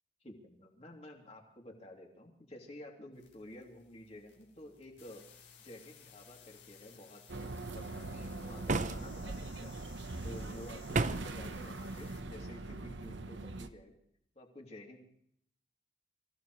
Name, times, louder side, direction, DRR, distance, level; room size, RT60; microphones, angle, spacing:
voice 1, 0.2-5.2 5.6-9.7 10.2-14.0 14.3-15.0, left 1 dB, 35° left, 1 dB, 3.0 m, -51 dB
sound 1, 3.1-12.2, left 6 dB, 70° left, 4.2 m, -59 dB
sound 2, 7.3-13.7, right 2 dB, 75° right, 1.0 m, -42 dB
sound 3, 8.7-9.4 10.9-11.4, right 3 dB, 40° right, 0.7 m, -32 dB
26.0 x 16.0 x 3.2 m, 0.68 s
head